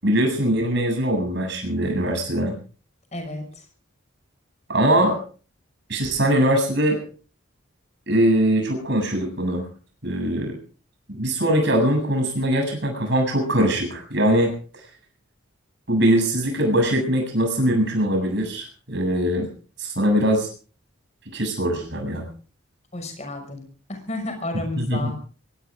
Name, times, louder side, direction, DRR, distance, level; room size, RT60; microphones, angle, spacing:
voice 1, 0.0-2.5 4.7-5.2 5.9-7.0 8.1-9.7 10.0-10.6 11.2-14.5 15.9-19.5 19.8-20.5 21.3-22.2 24.8-25.1, right 1 dB, 55° right, 3 dB, 7.5 m, -21 dB
voice 2, 3.1-3.4 22.9-25.2, left 2 dB, 30° left, 5 dB, 5.9 m, -31 dB
23.0 x 17.0 x 3.7 m, 0.41 s
head